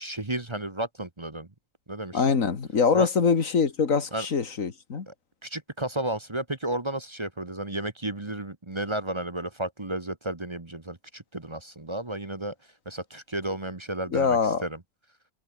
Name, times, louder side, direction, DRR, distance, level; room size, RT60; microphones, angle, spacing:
voice 1, 0.0-1.5 1.9-2.2 2.9-3.1 4.1-4.3 5.1-5.2 5.4-12.5 12.8-14.8, right 1 dB, 20° right, 1.4 m, -33 dB
voice 2, 2.1-5.1 14.1-14.6, left 5 dB, 85° left, 2.3 m, -23 dB
omnidirectional pair, 1.4 m